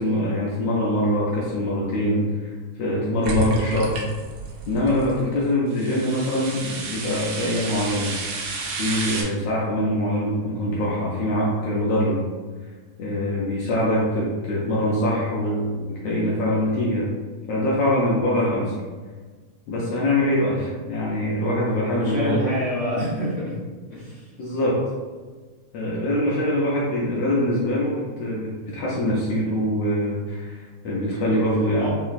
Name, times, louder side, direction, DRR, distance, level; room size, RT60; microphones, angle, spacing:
voice 1, 0.0-3.9 4.7-8.1 8.8-12.2 13.0-17.1 17.5-18.8 19.7-22.6 23.0-23.1 24.4-24.8 25.7-31.9, left 1 dB, 85° left, -5 dB, 1.3 m, -23 dB
sound 1, 3.2-5.2 5.7-9.2, right 3 dB, 90° right, 1.3 m, -30 dB
voice 2, 21.9-23.6 23.9-24.3 31.5-31.9, equal, 65° left, -10 dB, 1.4 m, -27 dB
5.5 x 2.0 x 2.4 m, 1.4 s
omnidirectional pair, 3.3 m